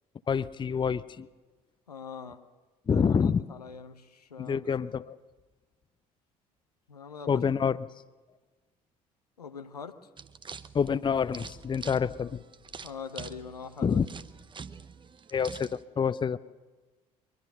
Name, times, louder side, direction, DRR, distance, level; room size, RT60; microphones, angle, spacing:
voice 1, 0.3-1.3 2.9-3.5 4.4-5.2 7.3-7.8 10.7-12.4 13.8-14.1 15.3-16.4, left 6 dB, 25° left, 17 dB, 0.6 m, -27 dB
voice 2, 1.9-2.4 2.9-4.6 6.9-7.4 9.4-10.0 12.8-14.0, left 6 dB, 85° left, 9 dB, 0.8 m, -43 dB
sound 1, 10.2-15.8, right 5 dB, 25° right, 0.8 m, -46 dB
23.0 x 21.5 x 6.7 m, 1.3 s
figure-of-eight pair, 50°, 19 cm